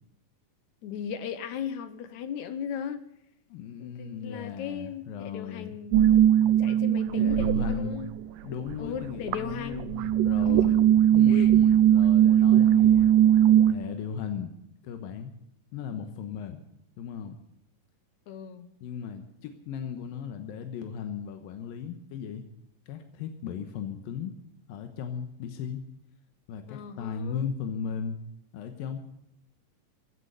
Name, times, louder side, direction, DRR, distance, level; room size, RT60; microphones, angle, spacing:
voice 1, 0.8-3.0 3.8-6.0 6.6-8.1 8.8-9.9 10.5-10.7 11.3-11.5 12.4-12.5 18.3-18.7 26.7-27.5, left 8 dB, 70° left, 11 dB, 2.0 m, -37 dB
voice 2, 3.5-5.8 7.2-8.1 8.4-10.8 11.1-13.1 13.7-14.5 14.8-15.3 15.7-16.6 17.0-17.4 18.8-22.4 22.9-24.3 24.7-25.8 26.5-28.2 28.5-29.0, left 7 dB, 90° left, 6 dB, 2.9 m, -36 dB
sound 1, 5.9-8.3 8.5-13.7, right 11 dB, 80° right, 2.2 m, -20 dB
16.5 x 9.8 x 8.1 m, 0.78 s
omnidirectional pair, 4.0 m